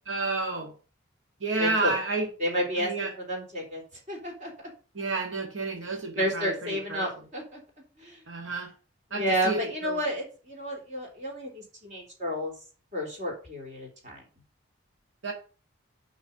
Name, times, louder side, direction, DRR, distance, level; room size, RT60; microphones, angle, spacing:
voice 1, 0.1-0.7 1.4-2.2 2.8-3.1 4.9-7.0 8.3-8.7 9.1-10.0 15.2-15.3, right 3 dB, 75° right, 1 dB, 1.8 m, -30 dB
voice 2, 1.6-2.0 2.4-3.8 4.1-4.5 6.2-7.6 8.0-8.2 9.1-12.5 12.9-14.2, equal, 35° right, 0 dB, 3.2 m, -31 dB
5.8 x 5.6 x 7.0 m, 0.36 s
head